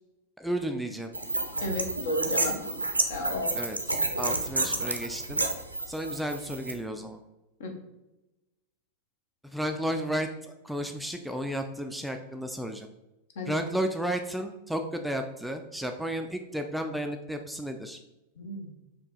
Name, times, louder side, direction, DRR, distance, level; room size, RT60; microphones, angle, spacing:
voice 1, 0.4-1.1 3.5-5.4 5.9-7.2 9.4-12.9 13.5-18.0, equal, ahead, 5 dB, 0.3 m, -33 dB
sound 1, 1.1-6.7, right 2 dB, 85° right, 0.5 m, -30 dB
voice 2, 1.6-2.6 3.1-3.6 7.6-7.7 13.4-13.6 18.4-18.7, left 1 dB, 55° left, 3 dB, 0.9 m, -32 dB
4.7 x 2.9 x 3.8 m, 0.98 s
figure-of-eight pair, 90°, 0 cm